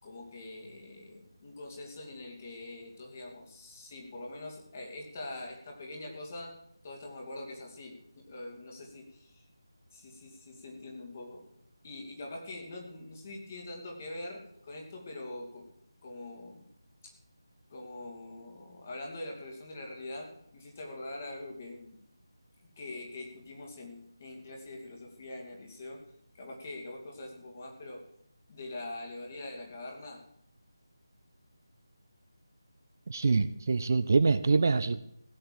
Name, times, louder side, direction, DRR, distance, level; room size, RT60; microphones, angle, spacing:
voice 1, 0.0-6.6 6.8-9.4 9.9-11.4 11.8-15.7 16.0-16.7 17.0-17.1 17.7-22.0 22.8-26.0 26.3-28.0 28.5-30.2, left 2 dB, 30° left, 1 dB, 2.8 m, -43 dB
voice 2, 33.1-35.1, right 4 dB, 40° right, 13 dB, 0.5 m, -25 dB
16.0 x 6.9 x 7.7 m, 0.73 s
figure-of-eight pair, 160°, 2 cm